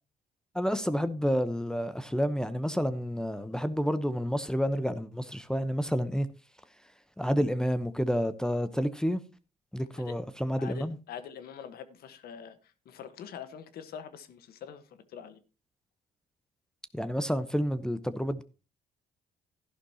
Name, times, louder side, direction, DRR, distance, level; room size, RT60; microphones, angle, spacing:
voice 1, 0.5-6.3 7.2-9.2 9.7-11.0 16.9-18.4, equal, 5° left, 0.9 m, -29 dB
voice 2, 10.6-12.6 12.8-15.4, left 8 dB, 75° left, 1.3 m, -44 dB
12.5 x 11.0 x 2.9 m
cardioid pair, 80°, 16 cm